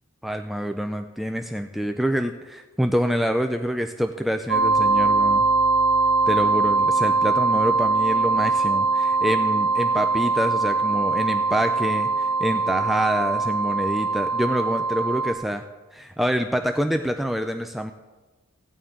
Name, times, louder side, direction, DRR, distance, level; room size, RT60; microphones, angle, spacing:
voice 1, 0.2-5.4 6.3-15.7 15.9-17.9, equal, ahead, 6 dB, 0.3 m, -26 dB
sound 1, 4.5-15.3, right 3 dB, 70° right, 1.1 m, -22 dB
16.0 x 8.9 x 3.7 m, 1.2 s
head